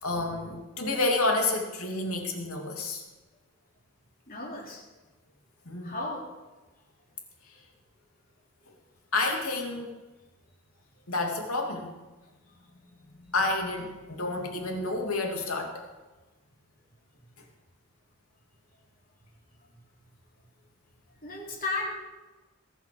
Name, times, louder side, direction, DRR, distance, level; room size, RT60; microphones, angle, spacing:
voice 1, 0.0-3.0 5.6-6.0 7.5-7.6 9.1-9.9 11.1-11.9 13.3-15.8, left 2 dB, 80° left, 2 dB, 2.9 m, -29 dB
voice 2, 4.3-4.8 5.8-6.2 21.2-21.9, left 2 dB, 40° left, -2 dB, 3.6 m, -34 dB
21.5 x 8.2 x 7.0 m, 1.1 s
head